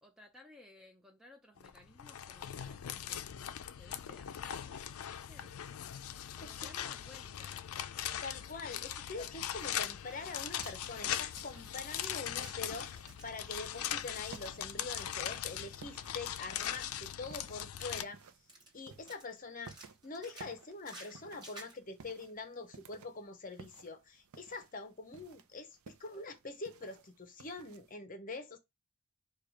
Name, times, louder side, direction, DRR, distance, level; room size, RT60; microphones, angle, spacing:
voice 1, 0.0-3.2 3.7-5.5 6.4-7.6, left 2 dB, ahead, 0.4 m, -59 dB
sound 1, 1.6-18.0, left 10 dB, 80° left, 0.4 m, -40 dB
voice 2, 6.4-6.7 8.2-12.9 13.2-18.2 18.7-19.7 20.0-28.6, left 3 dB, 40° left, 0.7 m, -44 dB
sound 2, 9.4-27.9, right 5 dB, 80° right, 0.5 m, -58 dB
sound 3, 9.6-12.7 13.1-15.2 15.5-15.7 16.0-16.4 16.7-18.2 18.5-19.4 19.7-21.8, right 1 dB, 20° right, 1.4 m, -55 dB
4.7 x 2.3 x 4.7 m
head